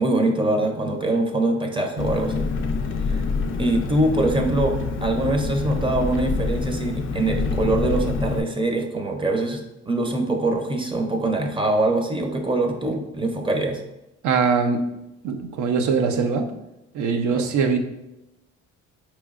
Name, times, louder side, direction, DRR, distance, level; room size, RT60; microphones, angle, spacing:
voice 1, 0.0-2.5 3.1-3.2 3.6-13.8 17.3-17.5, right 2 dB, 15° right, 3 dB, 0.5 m, -23 dB
Engine, 2.0-8.4, left 4 dB, 45° left, 0.4 m, -26 dB
voice 2, 14.2-14.8 15.2-16.5 16.9-17.8, right 5 dB, 80° right, 5 dB, 0.6 m, -22 dB
4.6 x 3.1 x 2.4 m, 0.93 s
cardioid pair, 90°, 30 cm